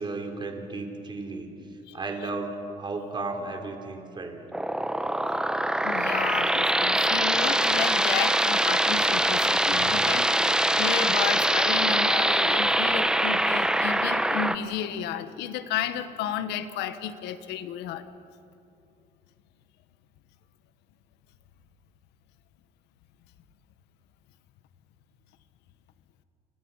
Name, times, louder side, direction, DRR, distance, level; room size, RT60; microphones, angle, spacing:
voice 1, 0.0-1.5 1.9-4.4, right 3 dB, 25° right, 3 dB, 3.9 m, -34 dB
sound 1, 4.5-14.6, right 1 dB, 5° right, 1.0 m, -23 dB
voice 2, 5.8-10.5 10.8-18.1, left 9 dB, 85° left, 11 dB, 1.4 m, -32 dB
30.0 x 27.0 x 5.7 m, 2.7 s
cardioid pair, 110°, 17 cm